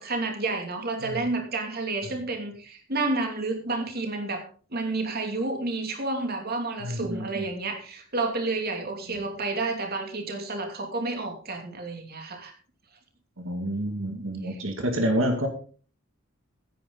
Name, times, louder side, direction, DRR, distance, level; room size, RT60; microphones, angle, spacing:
voice 1, 0.0-12.5 14.4-14.6, right 3 dB, 50° right, 3 dB, 2.8 m, -30 dB
voice 2, 6.8-7.4 9.1-9.2 13.4-15.5, equal, 80° right, 4 dB, 2.5 m, -28 dB
16.0 x 9.8 x 4.0 m, 0.41 s
head